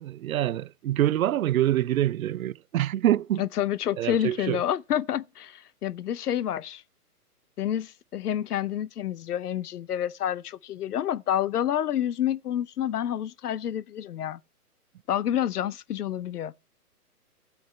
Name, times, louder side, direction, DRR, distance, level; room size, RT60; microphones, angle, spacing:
voice 1, 0.0-3.4 4.0-4.6, right 12 dB, 65° right, 0.5 m, -25 dB
voice 2, 3.4-6.8 7.6-14.4 15.1-16.5, left 10 dB, 75° left, 0.7 m, -28 dB
16.0 x 6.2 x 4.4 m
hypercardioid pair, 145°, 46 cm